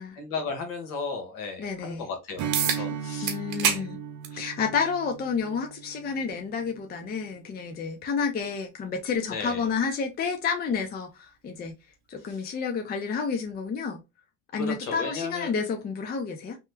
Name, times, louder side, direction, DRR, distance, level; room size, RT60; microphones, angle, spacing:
voice 1, 0.2-3.3 3.6-3.9 9.3-9.7 12.3-12.5 14.5-15.5, left 4 dB, 60° left, 1.3 m, -35 dB
voice 2, 1.6-2.0 2.7-2.8 3.2-4.0 4.3-11.7 12.1-14.0 14.5-16.6, left 5 dB, 25° left, 0.6 m, -30 dB
Strum, 2.4-7.2, right 7 dB, 50° right, 0.7 m, -37 dB
sound 1, 2.5-2.8 3.3-3.8 4.2-4.4 5.5-5.6 10.5-10.6, right 8 dB, 70° right, 0.9 m, -26 dB
3.0 x 2.2 x 3.3 m
supercardioid pair, 110°, 37 cm